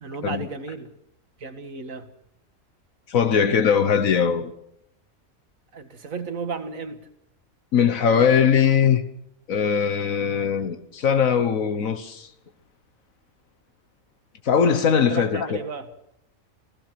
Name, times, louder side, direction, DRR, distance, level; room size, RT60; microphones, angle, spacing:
voice 1, 0.0-0.9 1.4-2.1 5.7-7.0 15.0-15.9, right 4 dB, 75° right, 2.2 m, -33 dB
voice 2, 3.1-4.5 7.7-9.0 9.5-12.3 14.4-15.6, left 7 dB, 80° left, 1.6 m, -20 dB
29.0 x 16.5 x 6.0 m
omnidirectional pair, 1.4 m